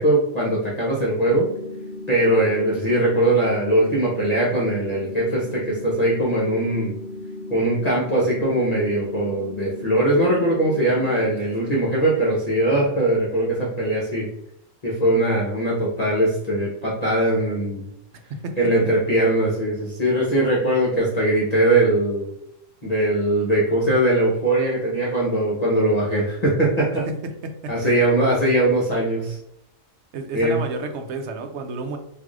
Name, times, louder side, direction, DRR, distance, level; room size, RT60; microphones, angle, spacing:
voice 1, 0.0-1.5 2.1-6.9 7.5-14.3 14.8-17.9 18.6-22.3 22.8-27.1 27.7-29.4 30.3-30.6, right 1 dB, 35° left, -5 dB, 0.8 m, -21 dB
sound 1, 1.3-11.3, left 1 dB, 80° left, 1.0 m, -35 dB
voice 2, 27.4-28.0 30.1-32.0, right 3 dB, 65° right, 6 dB, 0.8 m, -31 dB
4.6 x 2.6 x 2.4 m, 0.76 s
omnidirectional pair, 1.3 m